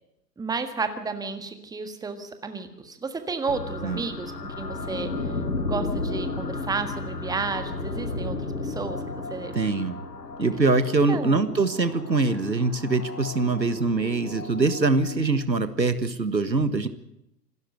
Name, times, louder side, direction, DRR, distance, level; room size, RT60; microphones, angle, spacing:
voice 1, 0.4-9.6 11.1-11.4, right 4 dB, 5° right, 8 dB, 1.7 m, -32 dB
sound 1, 3.5-15.4, left 3 dB, 75° left, 2.9 m, -34 dB
voice 2, 9.5-10.0 10.4-16.9, right 3 dB, 90° right, 12 dB, 1.7 m, -23 dB
26.0 x 13.0 x 7.9 m, 0.84 s
figure-of-eight pair, 105°, 50 cm